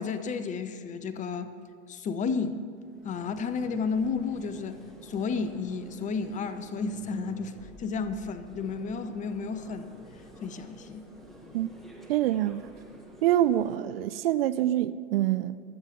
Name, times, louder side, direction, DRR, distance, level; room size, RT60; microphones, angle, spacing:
voice 1, 0.0-1.5 1.9-2.6 3.0-9.9 10.4-11.0, left 5 dB, 20° left, 12 dB, 0.6 m, -32 dB
sound 1, 2.8-13.8, right 1 dB, ahead, 1.8 m, -51 dB
voice 2, 12.1-12.6 13.2-15.6, right 13 dB, 50° right, 14 dB, 0.5 m, -25 dB
24.0 x 8.1 x 3.7 m, 2.3 s
figure-of-eight pair, 95°, 38 cm